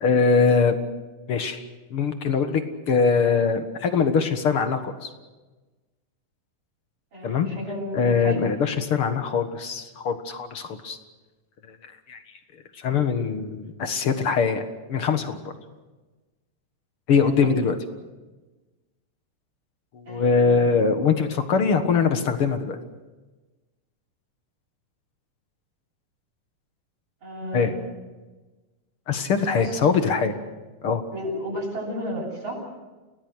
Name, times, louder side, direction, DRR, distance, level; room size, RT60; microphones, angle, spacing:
voice 1, 0.0-0.8 1.3-1.6 1.9-2.6 2.9-5.1 7.2-7.5 7.9-11.0 11.7-11.8 12.1-12.2 12.8-14.6 14.9-15.4 17.1-17.8 19.9-22.8 27.5-27.7 29.1-30.3 30.8-31.0, left 5 dB, 50° left, 8 dB, 2.1 m, -22 dB
voice 2, 7.1-8.4 17.2-17.6 20.1-20.7 27.2-27.9 29.4-29.8 31.1-32.6, equal, 35° right, -1 dB, 8.9 m, -33 dB
29.5 x 19.0 x 6.3 m, 1.2 s
omnidirectional pair, 3.7 m